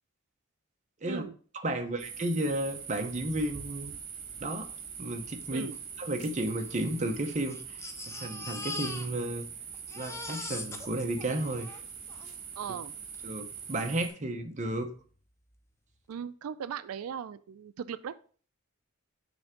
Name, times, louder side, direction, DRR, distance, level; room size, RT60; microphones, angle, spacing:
voice 1, 1.0-1.3 5.5-5.8 12.6-12.9 16.1-18.2, right 7 dB, 90° right, 14 dB, 0.4 m, -38 dB
voice 2, 1.5-3.9 4.4-4.7 5.0-5.7 6.0-7.8 8.2-9.5 10.0-11.7 13.2-14.9, right 1 dB, 35° right, 4 dB, 0.8 m, -32 dB
sound 1, 2.0-14.1, right 7 dB, 60° right, 1.6 m, -43 dB
Crying sobbing, 5.4-5.5 5.7-5.8 6.6-9.5 9.7-12.3 13.1-13.2 13.6-13.7, left 2 dB, 15° left, 0.5 m, -42 dB
6.2 x 3.4 x 5.1 m, 0.43 s
head